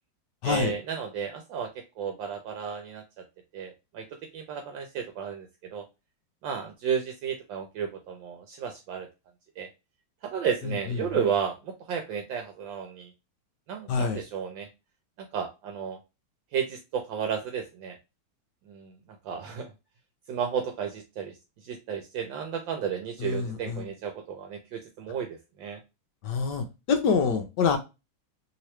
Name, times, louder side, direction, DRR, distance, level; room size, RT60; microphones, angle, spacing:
voice 1, 0.4-3.2 3.5-5.8 6.4-9.1 9.6-9.7 10.2-13.1 13.7-14.7 15.2-16.0 16.5-18.0 18.7-18.9 19.2-19.7 20.3-25.8, right 7 dB, 75° right, 5 dB, 1.2 m, -33 dB
voice 2, 13.9-14.2 23.2-23.8 26.2-27.8, left 5 dB, 70° left, 6 dB, 1.1 m, -26 dB
3.1 x 2.9 x 2.9 m, 0.26 s
omnidirectional pair, 2.2 m